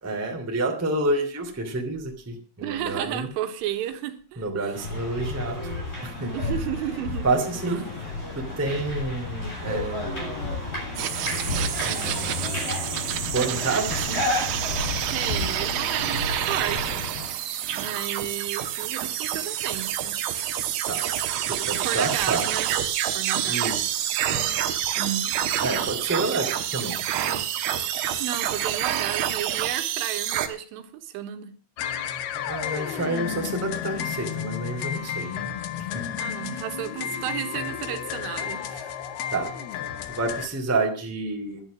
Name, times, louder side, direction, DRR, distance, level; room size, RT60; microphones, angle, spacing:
voice 1, 0.0-3.3 4.3-5.7 6.0-6.3 7.2-7.8 8.3-10.3 11.8-12.5 13.3-14.2 20.9-21.0 21.4-22.4 23.4-24.1 25.6-27.0 32.4-35.4 35.8-36.0 39.3-39.5 40.1-41.6, right 2 dB, 5° right, 2 dB, 1.2 m, -29 dB
voice 2, 2.6-4.8 6.3-7.3 7.7-7.8 15.1-17.1 17.7-20.2 21.8-22.7 23.1-23.7 25.0-25.4 28.2-31.5 36.2-39.0, right 11 dB, 85° right, 7 dB, 3.8 m, -33 dB
sound 1, 4.7-17.3, left 2 dB, 10° left, 7.8 m, -31 dB
sound 2, 11.0-30.5, right 10 dB, 70° right, 2.7 m, -28 dB
sound 3, 31.8-40.5, left 9 dB, 70° left, 2.7 m, -32 dB
11.0 x 11.0 x 6.2 m, 0.40 s
omnidirectional pair, 5.5 m